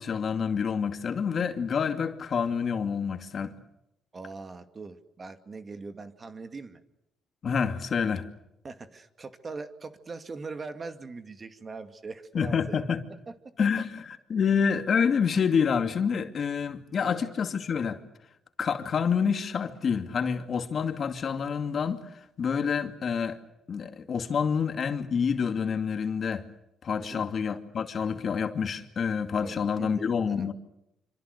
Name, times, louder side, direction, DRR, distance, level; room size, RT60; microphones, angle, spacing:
voice 1, 0.0-3.6 7.4-8.2 12.3-13.0 13.6-18.0 18.6-22.0 22.4-23.4 23.7-26.5 26.8-30.5, left 6 dB, 50° left, 2.5 m, -27 dB
voice 2, 4.1-6.8 8.6-12.8 13.3-13.4 17.0-17.2 27.0-27.3 29.4-30.5, right 4 dB, 35° right, 2.2 m, -41 dB
27.0 x 26.0 x 6.7 m
cardioid pair, 90°, 0 cm